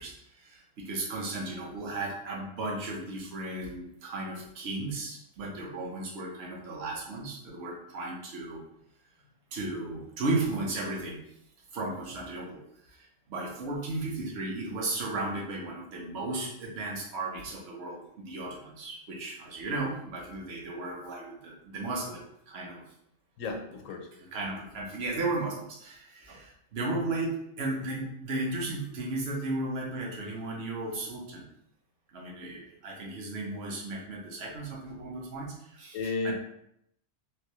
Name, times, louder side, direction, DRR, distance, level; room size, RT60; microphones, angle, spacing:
voice 1, 0.0-8.6 9.5-11.2 11.7-22.8 24.2-31.4 32.1-36.3, right 2 dB, 55° right, -2 dB, 1.0 m, -35 dB
voice 2, 23.4-24.1 35.9-36.3, left 3 dB, 80° left, 4 dB, 1.0 m, -33 dB
3.4 x 2.6 x 2.9 m, 0.77 s
omnidirectional pair, 1.3 m